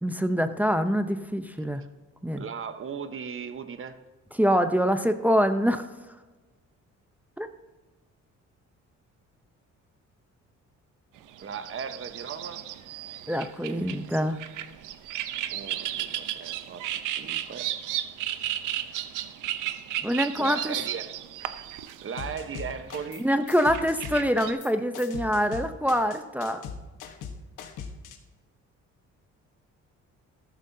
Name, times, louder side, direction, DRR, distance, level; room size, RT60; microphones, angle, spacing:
voice 1, 0.0-1.8 2.2-2.4 4.4-5.8 7.4-7.5 13.3-14.4 20.0-20.7 23.2-26.6, equal, 5° right, 8 dB, 0.7 m, -25 dB
voice 2, 2.4-4.0 11.4-12.7 15.5-17.7 20.4-21.2 22.0-23.3, right 6 dB, 45° right, 10 dB, 1.0 m, -37 dB
sound 1, 11.2-24.5, right 12 dB, 85° right, 0.7 m, -34 dB
sound 2, 22.2-23.2 23.5-28.2, left 6 dB, 90° left, 1.2 m, -39 dB
14.0 x 12.5 x 2.7 m, 1.3 s
cardioid pair, 90°, 30 cm